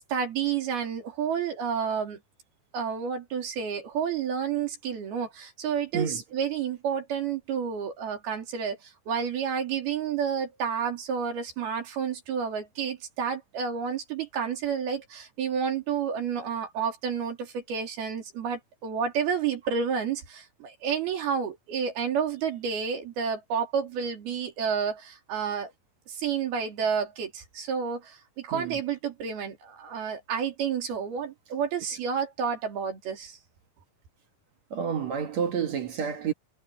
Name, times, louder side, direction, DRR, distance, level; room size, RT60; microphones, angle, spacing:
voice 1, 0.1-2.2 2.7-25.7 26.1-33.4, right 7 dB, 80° right, 5.5 m, -30 dB
voice 2, 28.5-28.8 34.7-36.3, right 7 dB, 55° right, 2.7 m, -29 dB
omnidirectional pair, 4.3 m